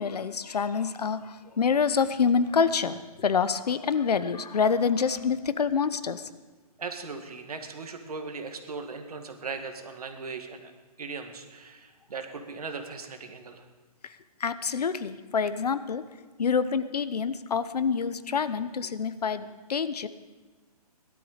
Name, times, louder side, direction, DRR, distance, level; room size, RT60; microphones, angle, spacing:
voice 1, 0.0-6.3 14.0-16.0 16.4-20.1, left 6 dB, 80° left, 13 dB, 0.9 m, -27 dB
voice 2, 6.8-10.7 11.0-13.6, right 4 dB, 70° right, 6 dB, 2.0 m, -38 dB
17.5 x 12.5 x 5.1 m, 1.3 s
hypercardioid pair, 165°, 20 cm